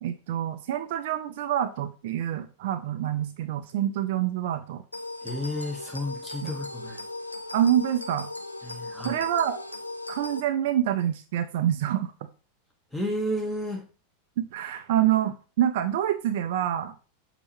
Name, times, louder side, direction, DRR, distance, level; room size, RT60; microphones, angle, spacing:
voice 1, 0.0-4.8 6.4-6.5 7.5-8.3 9.0-9.6 10.1-12.1 14.4-16.9, right 11 dB, 50° right, 10 dB, 0.3 m, -26 dB
sound 1, 4.9-10.4, left 2 dB, 85° left, 0.3 m, -38 dB
voice 2, 5.2-7.0 8.6-9.2 12.9-13.8, equal, ahead, 0 dB, 1.2 m, -32 dB
6.1 x 2.8 x 3.0 m, 0.34 s
figure-of-eight pair, 90°, 0 cm